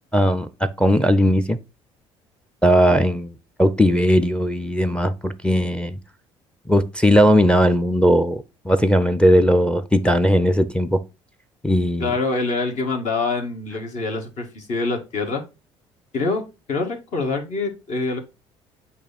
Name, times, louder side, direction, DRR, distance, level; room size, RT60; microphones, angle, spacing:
voice 1, 0.1-1.6 2.6-6.0 6.7-11.0 11.6-12.1, equal, 5° left, 0.6 m, -18 dB
voice 2, 12.0-15.4 16.1-16.4 16.7-18.2, left 3 dB, 55° left, 1.7 m, -25 dB
8.3 x 2.9 x 4.2 m
hypercardioid pair, 55°, 15 cm